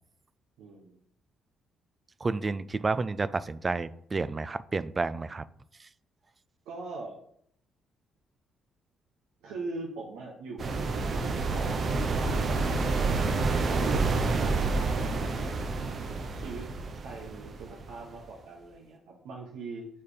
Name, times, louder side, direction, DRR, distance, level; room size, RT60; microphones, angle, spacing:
voice 1, 0.6-0.9 6.6-7.2 9.4-11.3 11.5-12.7 13.7-15.4 16.2-16.7 17.0-19.9, right 3 dB, 90° right, -3 dB, 1.1 m, -41 dB
voice 2, 2.2-5.4 5.8-5.9, right 3 dB, 30° right, 15 dB, 0.3 m, -30 dB
sound 1, 10.6-18.2, right 3 dB, 50° right, 0.8 m, -29 dB
5.5 x 4.5 x 5.0 m, 0.70 s
cardioid pair, 90°, 0 cm